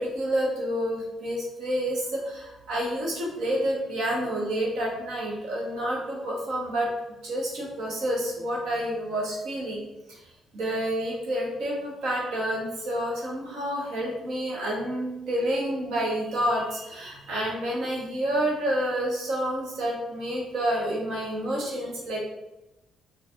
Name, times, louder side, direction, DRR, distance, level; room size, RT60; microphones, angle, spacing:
voice 1, 0.0-6.9 7.2-9.8 10.1-10.2 10.5-22.2, right 1 dB, 75° right, -3 dB, 1.3 m, -29 dB
4.2 x 3.1 x 2.6 m, 0.93 s
cardioid pair, 90°, 0 cm